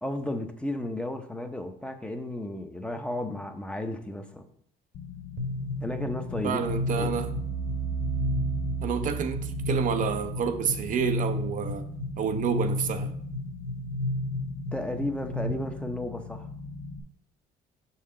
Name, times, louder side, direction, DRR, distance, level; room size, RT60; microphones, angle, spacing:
voice 1, 0.0-4.5 5.8-7.2 14.7-16.5, left 1 dB, 5° left, 0.7 m, -33 dB
sound 1, 4.9-17.0, left 4 dB, 65° left, 0.6 m, -41 dB
sound 2, 5.4-15.5, equal, 65° right, 1.1 m, -32 dB
voice 2, 6.4-7.3 8.8-11.9 12.2-13.1, right 7 dB, 50° right, 0.5 m, -29 dB
5.6 x 5.4 x 3.7 m
cardioid pair, 110°, 17 cm